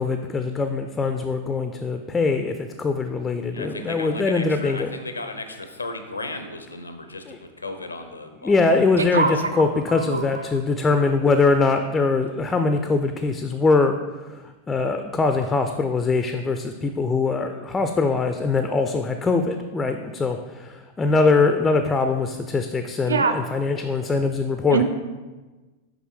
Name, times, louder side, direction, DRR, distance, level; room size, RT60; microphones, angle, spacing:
voice 1, 0.0-4.9 7.3-7.4 8.4-14.0 14.3-14.4 14.7-24.8, left 3 dB, 15° left, 7 dB, 0.3 m, -22 dB
voice 2, 3.5-8.7 9.2-9.5, left 2 dB, 80° left, 8 dB, 0.5 m, -35 dB
voice 3, 9.0-10.2 23.1-23.4 24.7-24.8, right 4 dB, 75° right, 8 dB, 0.4 m, -24 dB
6.0 x 5.1 x 3.1 m, 1.2 s
figure-of-eight pair, 90°, 0 cm